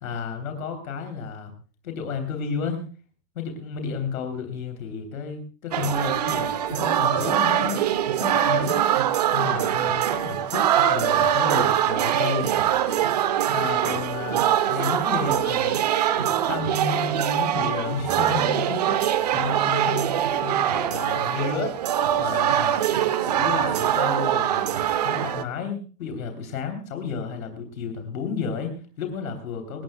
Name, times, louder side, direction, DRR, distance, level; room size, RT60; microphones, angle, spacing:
voice 1, 0.0-1.5 1.8-2.9 3.3-7.8 8.2-8.9 9.3-12.5 13.5-14.4 14.7-15.8 16.2-21.9 22.2-22.7 23.3-29.8, left 5 dB, 60° left, 5 dB, 3.3 m, -32 dB
sound 1, 5.7-25.4, right 10 dB, 25° right, 0.6 m, -23 dB
26.0 x 14.0 x 2.2 m, 0.38 s
hypercardioid pair, 165°, 48 cm